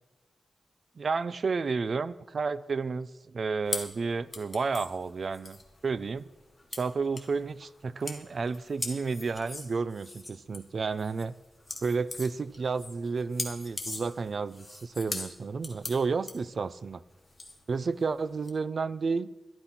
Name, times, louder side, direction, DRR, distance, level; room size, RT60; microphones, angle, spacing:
voice 1, 1.0-5.6 5.8-6.3 6.8-11.3 11.8-17.0 17.7-19.3, right 4 dB, 55° right, 17 dB, 0.5 m, -31 dB
sound 1, 3.7-18.5, left 2 dB, 20° left, 1.8 m, -41 dB
12.0 x 11.5 x 5.9 m, 1.1 s
wide cardioid pair, 110°, 0 cm